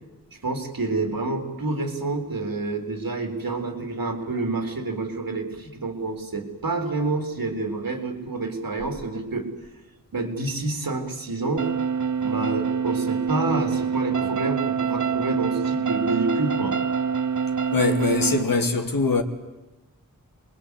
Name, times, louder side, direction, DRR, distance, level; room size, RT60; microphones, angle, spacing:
voice 1, 0.4-9.5 10.1-11.7 12.2-16.8, right 3 dB, 80° right, 3.8 m, -28 dB
sound 1, 11.6-18.4, right 6 dB, 55° right, 0.8 m, -25 dB
voice 2, 17.7-19.2, left 3 dB, 75° left, 2.3 m, -22 dB
27.5 x 21.0 x 8.4 m
wide cardioid pair, 70°, 35 cm